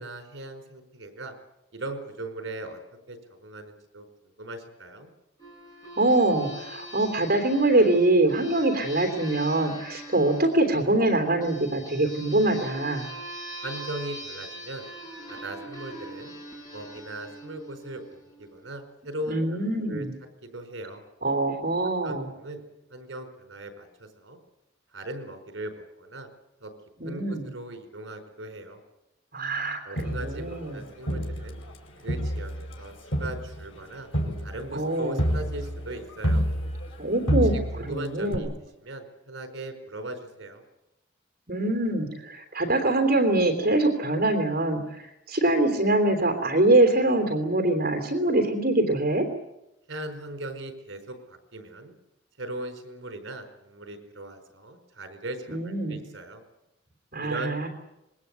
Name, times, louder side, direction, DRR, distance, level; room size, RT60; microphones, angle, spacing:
voice 1, 0.0-1.3 1.7-2.8 3.1-4.1 4.4-5.1 13.6-14.9 15.3-16.3 16.7-18.0 18.4-20.0 20.4-21.0 22.0-22.6 22.9-24.4 24.9-26.3 26.6-26.7 27.0-28.8 29.8-31.6 32.0-32.9 33.2-34.1 34.4-36.4 37.7-38.5 38.8-40.6 49.9-51.9 52.4-56.4 57.2-57.7, right 1 dB, 70° right, 6 dB, 4.8 m, -38 dB
sound 1, 5.4-18.6, right 1 dB, 20° left, 7.6 m, -42 dB
voice 2, 6.0-13.1 19.3-20.2 21.2-22.3 27.0-27.4 29.3-30.8 34.7-35.2 37.0-38.5 41.5-49.2 55.5-56.0 57.1-57.7, right 2 dB, 45° right, 4 dB, 3.1 m, -24 dB
Crowd, 30.0-31.8 32.1-37.0 37.3-37.9 38.3-38.4, equal, 80° left, 4.9 m, -28 dB
26.0 x 21.5 x 8.3 m, 0.90 s
head